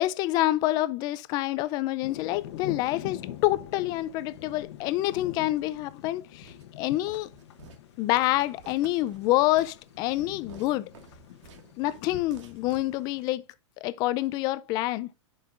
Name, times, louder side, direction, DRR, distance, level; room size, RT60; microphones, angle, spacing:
voice 1, 0.0-7.3 8.0-10.9 11.8-13.4 13.8-15.1, left 16 dB, 25° left, 0.4 m, -27 dB
sound 1, 2.0-13.2, left 12 dB, 55° left, 1.0 m, -44 dB
Walk footsteps, 6.4-13.3, right 4 dB, 65° right, 1.8 m, -52 dB
10.0 x 5.6 x 2.5 m
supercardioid pair, 155°, 16 cm